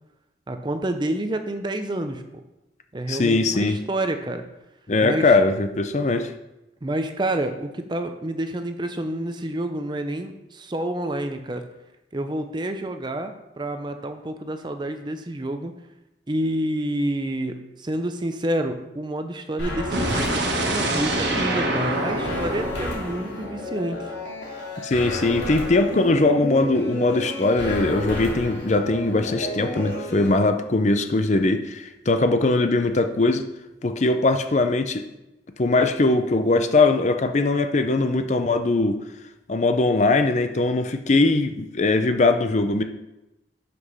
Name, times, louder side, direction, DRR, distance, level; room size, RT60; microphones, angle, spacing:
voice 1, 0.5-2.4 2.9-4.4 5.0-5.3 6.8-11.6 12.1-15.7 16.3-24.0, right 1 dB, 25° right, 7 dB, 0.6 m, -28 dB
voice 2, 3.1-3.8 4.9-6.3 24.8-33.4 33.8-35.0 35.6-39.0 39.5-42.8, left 2 dB, 40° left, 7 dB, 0.6 m, -21 dB
sound 1, 19.6-30.3, left 1 dB, 80° left, 2.7 m, -32 dB
sound 2, 19.9-23.9, right 1 dB, 80° right, 1.3 m, -26 dB
6.0 x 5.9 x 5.4 m, 0.95 s
head